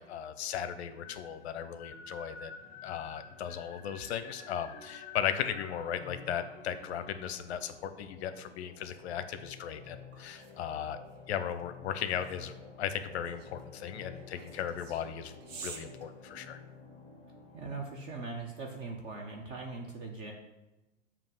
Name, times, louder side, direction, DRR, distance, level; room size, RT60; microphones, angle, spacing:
voice 1, 0.0-2.5 2.8-11.0 11.3-12.5 12.8-16.6, left 9 dB, 55° left, 11 dB, 0.7 m, -37 dB
sound 1, 0.8-17.9, left 4 dB, 20° left, 1.0 m, -51 dB
sound 2, 9.9-17.0, right 5 dB, 75° right, 1.3 m, -52 dB
voice 2, 17.5-20.3, right 3 dB, 15° right, 0 dB, 0.3 m, -40 dB
7.2 x 2.8 x 5.4 m, 1.0 s
hypercardioid pair, 120°, 38 cm